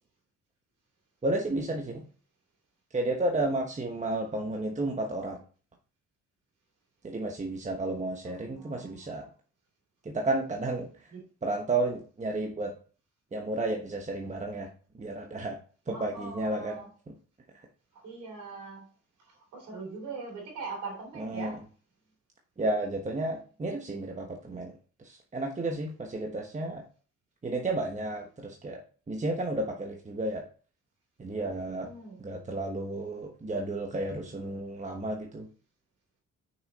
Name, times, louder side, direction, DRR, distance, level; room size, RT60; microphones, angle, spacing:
voice 1, 1.2-2.0 2.9-5.4 7.0-9.3 10.0-10.9 11.4-12.7 13.3-14.7 15.0-15.6 15.9-16.8 21.2-21.5 22.6-24.7 25.0-26.8 27.4-28.8 29.1-30.4 31.2-31.9 32.2-35.5, right 2 dB, 25° right, 2 dB, 1.2 m, -32 dB
voice 2, 8.2-9.3 11.1-11.2 15.9-16.9 17.9-18.9 19.2-21.6 31.7-32.2, right 4 dB, 85° right, -1 dB, 3.4 m, -42 dB
6.3 x 6.0 x 4.1 m, 0.39 s
cardioid pair, 90°, 30 cm